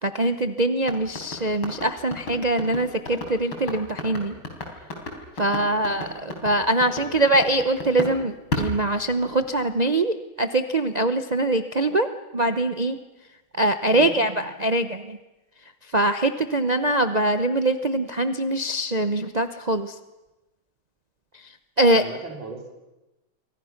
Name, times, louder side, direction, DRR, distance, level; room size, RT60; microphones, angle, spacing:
voice 1, 0.0-4.4 5.4-12.1 12.3-13.0 13.6-15.2 15.9-20.0 21.8-22.0, right 1 dB, 90° right, 8 dB, 0.3 m, -23 dB
sound 1, 0.8-8.2 8.5-9.6, left 2 dB, 75° left, 4.6 m, -32 dB
voice 2, 21.9-22.7, right 3 dB, 65° right, 1 dB, 4.6 m, -38 dB
28.5 x 23.5 x 5.9 m, 1.1 s
omnidirectional pair, 2.3 m